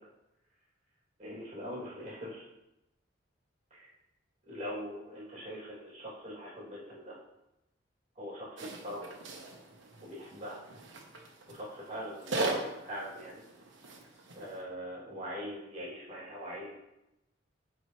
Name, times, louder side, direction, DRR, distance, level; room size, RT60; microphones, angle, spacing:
voice 1, 1.2-2.5 3.7-4.0 4.4-7.2 8.1-9.1 10.0-10.6 11.5-13.4 14.3-16.7, equal, 35° right, -6 dB, 3.1 m, -42 dB
sound 1, 8.6-14.6, right 2 dB, 75° right, 1.3 m, -39 dB
11.0 x 4.7 x 3.4 m, 0.92 s
head